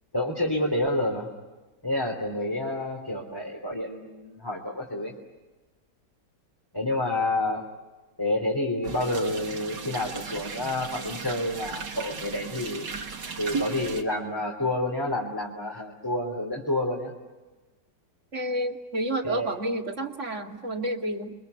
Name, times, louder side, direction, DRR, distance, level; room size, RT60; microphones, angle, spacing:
voice 1, 0.1-1.3 1.8-5.1 6.7-7.6 8.2-12.9 13.4-17.1 19.2-19.5, left 1 dB, 10° left, -1 dB, 3.2 m, -29 dB
sound 1, 8.8-14.0, right 5 dB, 80° right, 2.7 m, -36 dB
voice 2, 18.3-21.3, right 1 dB, 45° right, 4 dB, 2.5 m, -30 dB
29.5 x 24.0 x 8.2 m, 1.2 s
omnidirectional pair, 1.8 m